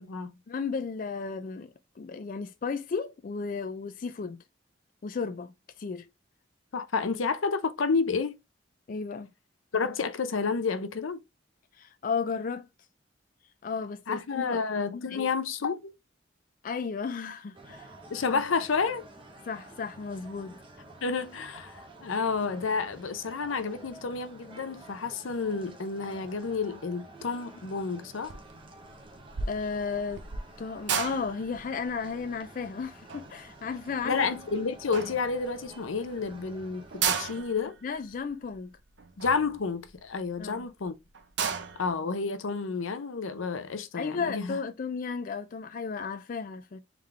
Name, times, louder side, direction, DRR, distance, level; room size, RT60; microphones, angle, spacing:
voice 1, 0.5-1.7 2.0-4.4 5.0-6.1 8.9-9.3 11.7-12.7 13.6-14.6 14.9-15.3 16.6-17.9 18.3-18.4 19.5-20.6 29.5-30.2 30.6-34.3 37.8-38.8 40.4-40.6 44.0-46.8, left 5 dB, 45° left, 0.3 m, -34 dB
voice 2, 6.7-8.3 9.7-11.2 14.1-15.9 18.1-19.0 21.0-28.3 34.0-37.8 39.2-40.9 41.5-44.6, left 4 dB, 85° left, 0.6 m, -30 dB
sound 1, 17.5-37.4, right 2 dB, 25° right, 0.8 m, -50 dB
sound 2, 28.3-28.6 28.9-34.5 34.9-35.7 36.1-36.2 36.4-36.5 36.8-40.4 40.8-40.9 41.1-41.9, right 6 dB, 65° right, 0.6 m, -34 dB
3.6 x 3.5 x 3.2 m
head